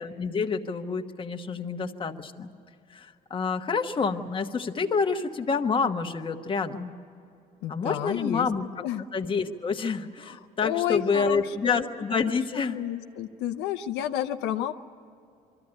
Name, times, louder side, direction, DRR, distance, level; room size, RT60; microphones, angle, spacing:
voice 1, 0.0-2.5 2.9-6.9 7.7-8.8 9.1-12.8, left 5 dB, 30° left, 5 dB, 1.2 m, -28 dB
voice 2, 7.6-8.5 8.8-9.0 10.2-14.7, left 11 dB, 90° left, 6 dB, 0.7 m, -31 dB
23.0 x 14.0 x 9.8 m, 2.5 s
cardioid pair, 110°, 17 cm